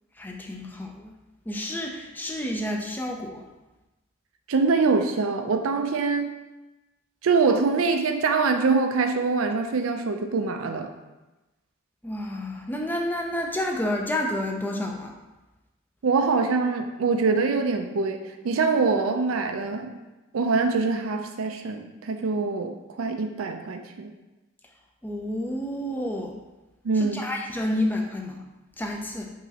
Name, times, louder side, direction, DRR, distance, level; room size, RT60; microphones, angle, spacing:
voice 1, 0.2-1.2 1.5-3.5 12.0-15.1 25.0-26.4 26.9-28.4 28.8-29.3, left 1 dB, 10° left, 1 dB, 0.3 m, -30 dB
voice 2, 4.5-6.3 7.2-10.9 16.0-18.2 18.4-19.9 20.3-24.1 26.8-27.2, right 4 dB, 85° right, 5 dB, 0.5 m, -24 dB
5.4 x 3.0 x 2.8 m, 1.1 s
head